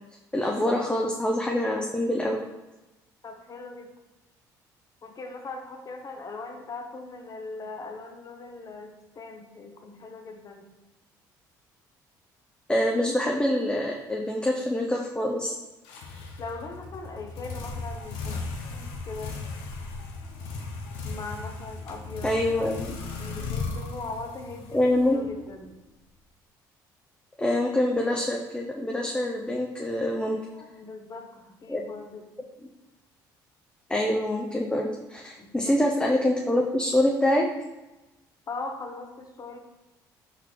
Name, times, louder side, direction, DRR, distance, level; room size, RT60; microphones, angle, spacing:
voice 1, 0.3-2.4 12.7-15.6 22.2-22.9 24.7-25.2 27.4-30.4 31.7-31.8 33.9-37.4, left 1 dB, 10° left, 0 dB, 0.6 m, -25 dB
voice 2, 3.2-3.9 5.0-10.7 16.4-19.4 21.0-22.4 22.8-25.8 30.5-32.3 35.4-35.8 38.5-39.6, left 3 dB, 40° left, 4 dB, 0.8 m, -40 dB
sound 1, 15.8-25.6, left 4 dB, 75° left, 0.6 m, -36 dB
4.2 x 4.0 x 3.1 m, 1.0 s
hypercardioid pair, 60°, 10 cm